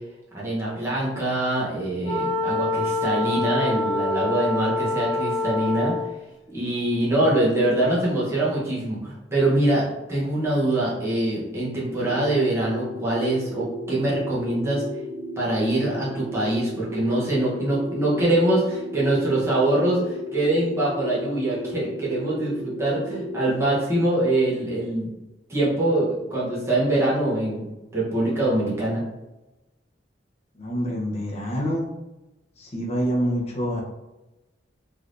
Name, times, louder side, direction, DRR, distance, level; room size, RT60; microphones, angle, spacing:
voice 1, 0.3-5.9 6.5-14.8 15.4-25.1 25.5-27.7 27.9-29.0, right 1 dB, 15° right, -7 dB, 0.8 m, -24 dB
Wind instrument woodwind instrument, 2.0-6.2, left 2 dB, 85° left, 1.2 m, -26 dB
sound 1, 11.8-23.6, left 1 dB, 55° right, 0.4 m, -35 dB
voice 2, 30.6-31.8 32.6-33.8, equal, 35° left, -2 dB, 0.7 m, -26 dB
3.3 x 2.7 x 2.5 m, 1.0 s
head